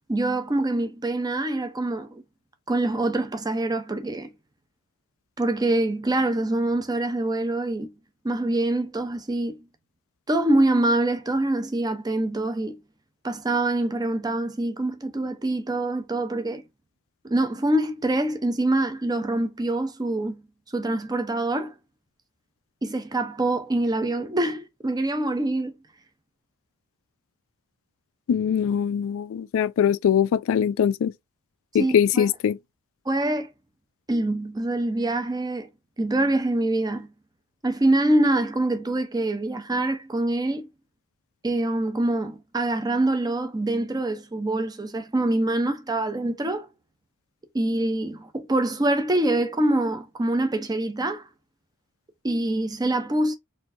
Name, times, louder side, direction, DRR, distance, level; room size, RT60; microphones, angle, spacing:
voice 1, 0.1-2.2 2.7-4.3 5.4-7.9 8.2-9.6 10.3-12.8 13.2-16.6 17.2-20.4 20.7-21.7 22.8-25.7 31.8-32.3 33.1-33.5 34.1-35.7 36.0-37.1 37.6-40.7 41.4-46.7 47.5-51.2 52.2-53.3, right 1 dB, 20° right, 0.6 m, -25 dB
voice 2, 28.3-31.1 31.7-32.6, left 8 dB, 60° left, 0.3 m, -22 dB
4.3 x 2.7 x 2.6 m
head